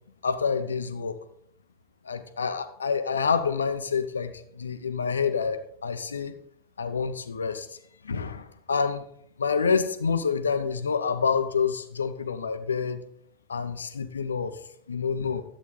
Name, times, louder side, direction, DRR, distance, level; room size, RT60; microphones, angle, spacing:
voice 1, 0.2-1.1 2.0-6.4 6.8-7.7 8.0-9.0 9.4-13.0 13.5-14.5 14.9-15.4, left 5 dB, 75° left, 0.7 m, -27 dB
10.5 x 7.8 x 3.8 m
figure-of-eight pair, 80°, 0 cm